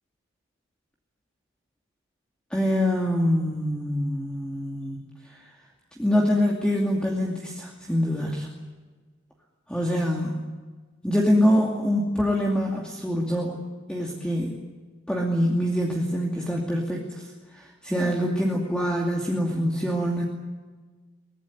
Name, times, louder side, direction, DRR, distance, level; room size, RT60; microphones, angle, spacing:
voice 1, 2.5-5.0 5.3-5.4 6.0-8.5 9.7-10.4 11.0-13.6 13.9-14.5 15.1-17.3 17.5-20.2, equal, 5° left, -1 dB, 2.6 m, -25 dB
23.5 x 20.0 x 9.8 m, 1.4 s
head